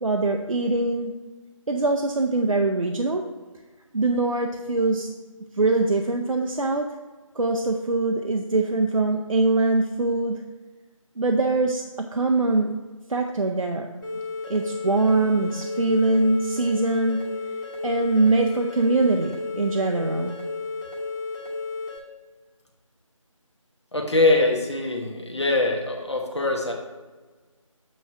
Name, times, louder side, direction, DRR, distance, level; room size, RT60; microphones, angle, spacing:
voice 1, 0.0-1.1 1.7-3.2 3.9-5.1 5.6-6.9 7.4-10.4 11.2-11.8 12.1-12.7 13.1-13.9 14.5-17.2 17.8-20.4, right 2 dB, 75° right, 3 dB, 0.6 m, -23 dB
sound 1, 14.0-22.0, left 3 dB, 35° left, 1.8 m, -33 dB
voice 2, 23.9-26.7, left 2 dB, 55° left, 1 dB, 1.3 m, -23 dB
8.2 x 3.2 x 5.6 m, 1.3 s
figure-of-eight pair, 170°, 17 cm